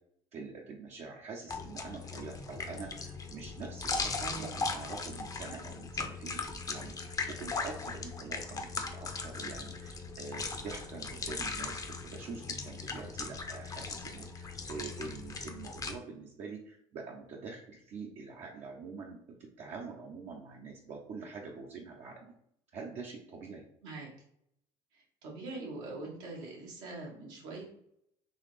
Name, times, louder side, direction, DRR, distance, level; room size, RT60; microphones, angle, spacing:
voice 1, 0.3-22.3 22.7-23.7, right 4 dB, 55° right, -2 dB, 0.7 m, -45 dB
sound 1, 1.5-16.0, left 4 dB, 25° left, 0.6 m, -39 dB
voice 2, 4.2-4.5 23.8-24.1 24.9-27.6, right 3 dB, 85° right, -3 dB, 1.5 m, -43 dB
3.9 x 2.9 x 3.2 m, 0.73 s
supercardioid pair, 85°, 14 cm